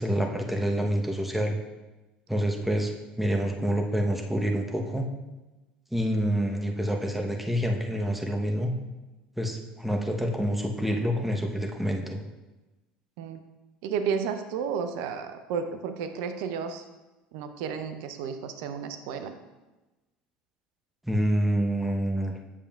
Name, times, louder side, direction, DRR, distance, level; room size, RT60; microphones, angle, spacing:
voice 1, 0.0-1.6 2.3-5.1 5.9-8.7 9.4-12.2 21.0-22.3, equal, 5° right, 2 dB, 0.9 m, -27 dB
voice 2, 13.8-16.8 17.3-19.4, right 6 dB, 65° right, 8 dB, 0.6 m, -32 dB
7.2 x 6.9 x 2.4 m, 1.1 s
hypercardioid pair, 70°, 5 cm